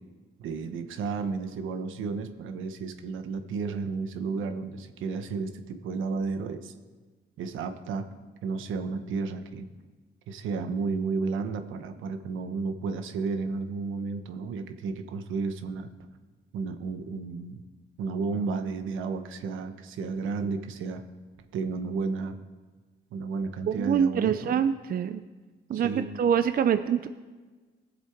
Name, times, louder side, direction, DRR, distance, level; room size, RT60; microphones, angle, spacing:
voice 1, 0.4-6.7 7.4-8.1 8.4-9.7 10.3-15.9 16.5-17.6 18.0-21.0 21.5-22.4 23.1-24.6 25.7-26.2, right 4 dB, 80° right, 8 dB, 1.1 m, -32 dB
voice 2, 23.7-25.2 25.7-25.9 26.2-27.1, right 8 dB, 50° right, 11 dB, 0.5 m, -25 dB
19.0 x 7.5 x 4.5 m, 1.3 s
cardioid pair, 90°, 20 cm